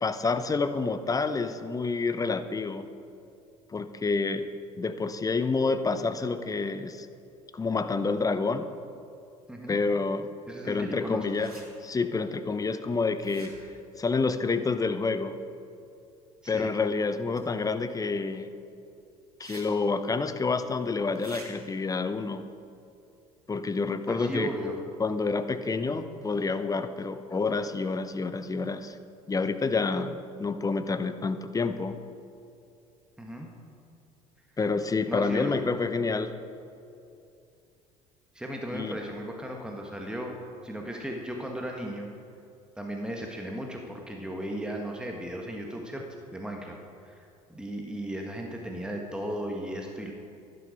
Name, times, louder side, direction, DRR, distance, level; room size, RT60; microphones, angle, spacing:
voice 1, 0.0-2.9 3.7-4.5 4.8-7.1 7.5-8.7 9.7-10.3 10.6-11.5 11.8-13.5 14.0-15.3 16.5-18.5 19.4-22.4 23.5-24.5 25.0-29.0 29.3-32.0 34.6-36.3 38.7-39.0, left 4 dB, 20° left, 11 dB, 0.8 m, -28 dB
voice 2, 9.5-9.8 10.5-11.3 16.4-16.7 24.1-24.8 25.8-26.0 33.2-33.5 35.1-35.7 38.3-40.3 40.6-42.1 42.8-46.0 46.3-46.8 47.0-50.1, equal, 5° right, 1 dB, 1.5 m, -36 dB
sound 1, 11.3-11.6 13.2-13.8 17.4-17.5 19.4-19.6 19.9-20.0 21.1-21.5, right 3 dB, 90° right, 1.6 m, -47 dB
11.5 x 11.0 x 5.1 m, 2.6 s
hypercardioid pair, 65°, 19 cm